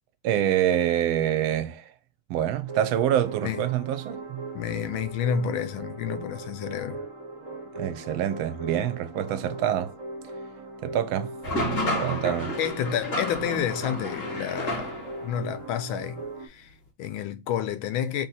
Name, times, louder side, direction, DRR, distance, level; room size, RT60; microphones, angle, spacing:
voice 1, 0.2-1.9 2.3-4.4 7.8-9.9 10.8-11.3 11.9-12.6, right 10 dB, 85° right, 1.4 m, -26 dB
sound 1, 2.6-16.5, right 2 dB, 30° right, 0.5 m, -39 dB
voice 2, 4.5-7.0 12.1-12.2 12.6-18.3, left 8 dB, 85° left, 1.4 m, -30 dB
sound 2, 11.4-15.3, left 1 dB, 45° left, 1.6 m, -31 dB
3.6 x 2.8 x 4.0 m
omnidirectional pair, 2.2 m